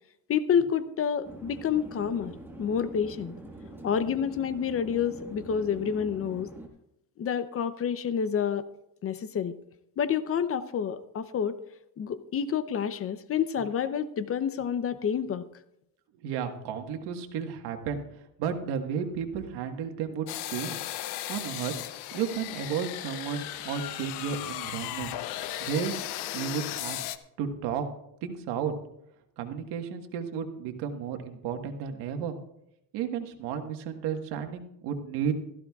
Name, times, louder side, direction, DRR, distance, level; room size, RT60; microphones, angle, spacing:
voice 1, 0.3-2.3 2.6-3.4 3.8-6.5 7.2-8.6 9.0-9.6 10.0-11.6 12.0-15.5, left 7 dB, 35° left, 13 dB, 0.7 m, -28 dB
Chatter / Fixed-wing aircraft airplane, 1.2-6.7, right 1 dB, 5° right, 1.5 m, -44 dB
voice 2, 16.2-18.0 18.4-20.8 21.3-21.7 22.1-25.1 25.6-26.0 26.3-27.0 27.4-27.8 28.2-28.7 29.4-32.4 32.9-35.3, right 7 dB, 85° right, 6 dB, 1.6 m, -33 dB
sound 1, 20.3-27.2, left 13 dB, 85° left, 0.9 m, -36 dB
16.5 x 14.0 x 2.4 m, 0.81 s
cardioid pair, 125°, 39 cm